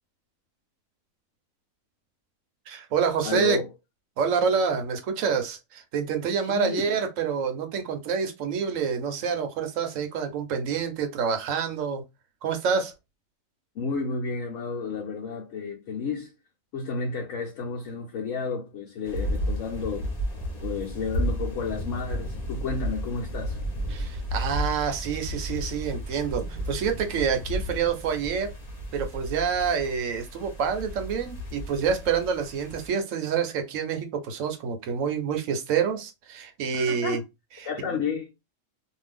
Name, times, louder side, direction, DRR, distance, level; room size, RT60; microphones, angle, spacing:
voice 1, 2.7-3.6 4.2-12.0 12.4-12.9 23.9-28.5 28.9-37.2 37.6-38.0, right 6 dB, 75° right, 1.1 m, -27 dB
voice 2, 3.2-3.7 6.4-6.9 13.7-16.3 16.7-20.2 20.6-23.6 36.7-37.2 37.6-38.3, left 5 dB, 70° left, 1.0 m, -31 dB
sound 1, 19.0-32.9, equal, 30° left, 1.0 m, -33 dB
2.6 x 2.3 x 3.4 m
omnidirectional pair, 1.4 m